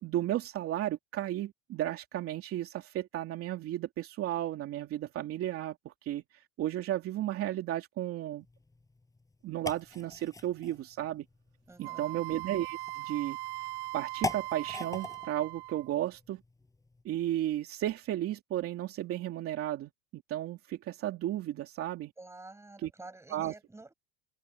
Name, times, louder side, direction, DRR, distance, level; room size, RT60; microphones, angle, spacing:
voice 1, 0.0-8.4 9.4-11.2 11.8-13.7 13.9-16.4 17.0-22.1 22.8-22.9 23.3-23.5, right 13 dB, 40° right, 2.8 m, -34 dB
sound 1, 8.4-17.0, left 3 dB, 10° left, 5.9 m, -44 dB
voice 2, 11.7-12.2 22.2-23.9, right 2 dB, 10° right, 7.7 m, -49 dB
Wind instrument woodwind instrument, 11.8-16.0, right 20 dB, 65° right, 2.0 m, -40 dB
supercardioid pair, 130°, 34 cm